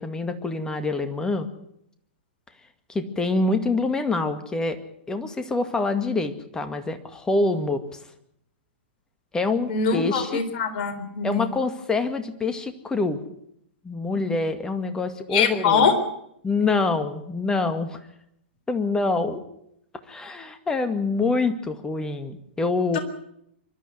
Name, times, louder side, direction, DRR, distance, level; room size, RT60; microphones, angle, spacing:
voice 1, 0.0-1.5 2.9-4.8 5.1-7.8 9.3-10.4 11.2-13.2 13.8-15.9 16.4-18.0 18.7-19.4 20.1-23.0, left 3 dB, 10° left, 9 dB, 2.1 m, -25 dB
voice 2, 9.7-11.5 15.3-15.9 22.9-23.0, left 6 dB, 45° left, 7 dB, 3.9 m, -23 dB
24.5 x 12.5 x 9.6 m, 0.74 s
figure-of-eight pair, 105°, 6 cm